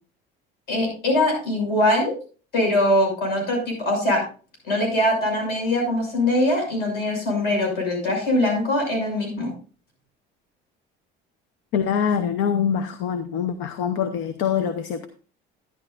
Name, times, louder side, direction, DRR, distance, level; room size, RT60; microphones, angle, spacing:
voice 1, 0.7-2.1 2.5-4.2 4.7-9.5, left 1 dB, 55° left, 6.2 m, -22 dB
voice 2, 11.7-15.1, left 7 dB, 70° left, 0.8 m, -24 dB
11.0 x 10.5 x 2.5 m
cardioid pair, 175°, 20 cm